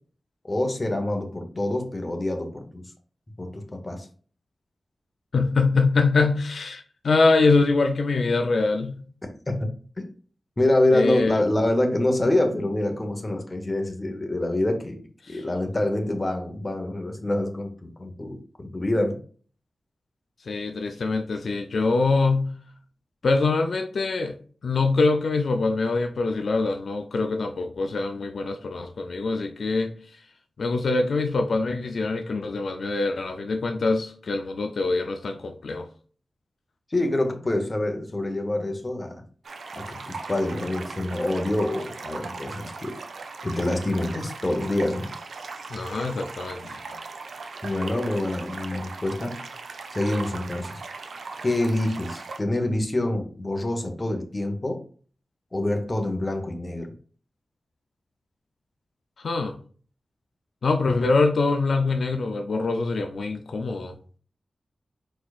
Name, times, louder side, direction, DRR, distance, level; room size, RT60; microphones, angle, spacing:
voice 1, 0.4-2.9 3.4-4.1 9.6-9.7 10.6-15.0 15.3-19.2 36.9-39.2 39.7-43.0 43.4-45.1 47.6-49.4 49.9-50.8 51.4-54.8 55.5-56.9, left 1 dB, 25° left, 0.9 m, -26 dB
voice 2, 5.3-9.0 10.9-11.4 15.2-15.4 20.5-22.5 23.2-24.4 24.6-30.2 30.6-35.9 45.7-46.8 59.2-59.6 60.6-64.0, left 3 dB, 75° left, 0.5 m, -24 dB
sound 1, 39.4-52.4, right 4 dB, 85° right, 0.6 m, -38 dB
4.8 x 4.3 x 2.4 m
wide cardioid pair, 100°, 0 cm